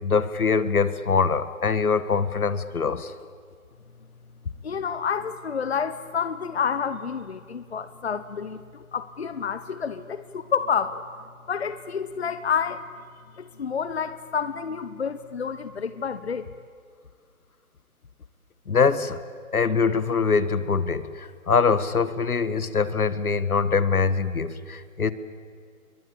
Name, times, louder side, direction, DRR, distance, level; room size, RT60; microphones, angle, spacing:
voice 1, 0.0-3.1 18.7-19.2 19.5-25.1, left 5 dB, 80° left, 14 dB, 1.8 m, -23 dB
voice 2, 4.6-11.0 11.5-12.8 13.4-16.5, left 6 dB, 45° left, 12 dB, 1.0 m, -29 dB
28.5 x 23.0 x 8.4 m, 2.1 s
hypercardioid pair, 170°, 43 cm